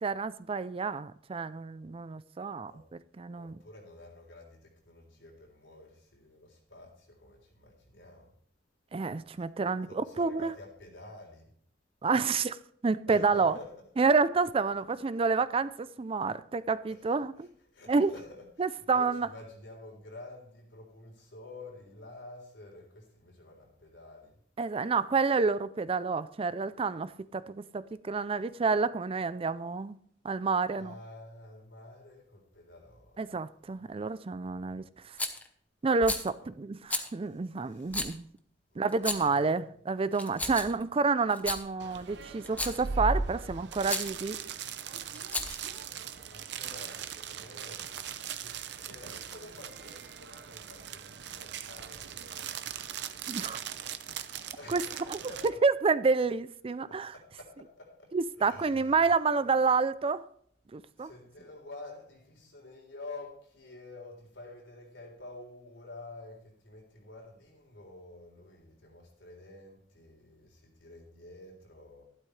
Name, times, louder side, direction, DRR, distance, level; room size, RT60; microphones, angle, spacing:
voice 1, 0.0-2.7 3.2-3.6 8.9-10.5 12.0-12.6 12.8-13.6 14.0-17.5 17.9-18.1 18.6-19.3 24.6-30.0 30.2-30.9 33.2-35.2 35.8-38.3 38.8-44.4 53.3-53.6 54.7-54.8 55.1-57.1 58.1-60.2 60.7-61.1, right 4 dB, 30° right, 0.4 m, -29 dB
voice 2, 3.3-8.3 9.9-11.5 13.1-13.7 16.9-17.0 17.7-24.3 30.7-33.5 33.8-33.9 37.6-38.2 38.7-38.8 39.2-39.4 45.4-53.0 54.5-55.6 56.9-59.0 59.4-59.5 61.0-72.0, left 2 dB, 85° left, 3.8 m, -50 dB
Rattle, 35.2-35.5 36.0-36.3 36.9-37.1 37.9-38.1 38.9-39.4 40.1-40.8 41.3-41.6 42.4-42.9 43.9-44.1 45.1-45.7, left 2 dB, 10° left, 0.9 m, -33 dB
sound 1, 41.8-55.5, right 5 dB, 65° right, 0.7 m, -39 dB
12.0 x 12.0 x 3.2 m
head